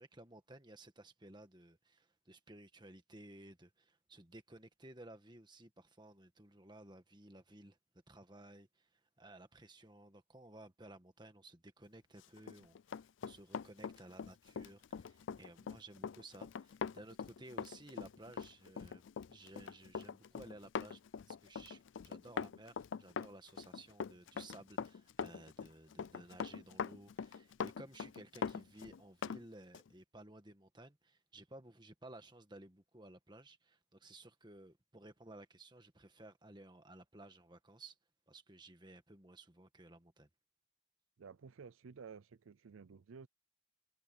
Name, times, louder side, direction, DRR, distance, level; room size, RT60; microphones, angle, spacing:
voice 1, 0.0-7.8 8.1-21.0 21.3-38.0 38.3-40.3, right 1 dB, 20° right, 1.6 m, -56 dB
Run, 12.4-29.4 29.7-29.9, left 6 dB, 65° left, 0.4 m, -43 dB
voice 2, 41.2-43.3, right 5 dB, 85° right, 0.5 m, -53 dB
head